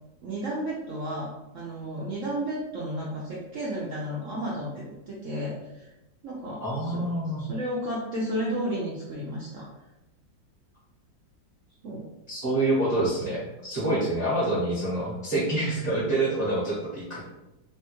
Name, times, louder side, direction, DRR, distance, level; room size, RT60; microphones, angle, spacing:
voice 1, 0.2-5.9 6.2-7.0 7.4-9.7 11.8-12.1, right 1 dB, 90° right, -5 dB, 0.6 m, -33 dB
voice 2, 6.6-7.5 12.3-17.2, right 2 dB, 35° right, -9 dB, 0.6 m, -27 dB
3.4 x 2.2 x 2.8 m, 0.96 s
omnidirectional pair, 2.0 m